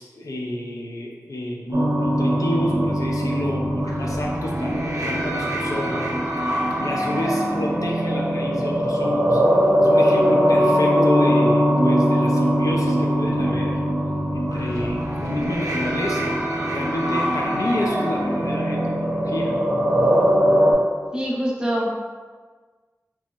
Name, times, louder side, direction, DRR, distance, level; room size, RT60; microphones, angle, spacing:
voice 1, 0.0-6.1 6.4-9.4 9.8-13.8 14.3-16.4 16.7-19.6, left 1 dB, 80° left, -1 dB, 0.4 m, -29 dB
sound 1, 1.7-20.7, equal, 85° right, 0.5 m, -21 dB
voice 2, 21.1-21.9, equal, 15° right, -3 dB, 0.5 m, -24 dB
3.0 x 2.7 x 2.2 m, 1.4 s
wide cardioid pair, 60°, 6 cm